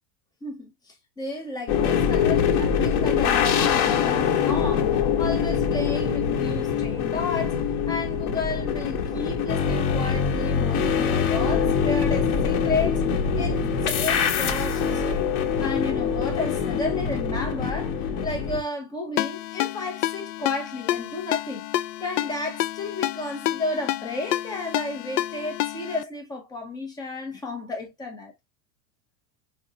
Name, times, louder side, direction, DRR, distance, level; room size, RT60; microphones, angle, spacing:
voice 1, 0.4-13.0 13.4-15.3 15.6-21.6 22.0-28.3, left 3 dB, 10° left, 0.4 m, -32 dB
sound 1, 1.7-18.6, left 7 dB, 40° left, 0.9 m, -24 dB
Ringtone, 19.2-26.0, left 15 dB, 80° left, 0.5 m, -29 dB
5.0 x 3.1 x 2.7 m
supercardioid pair, 175°, 48 cm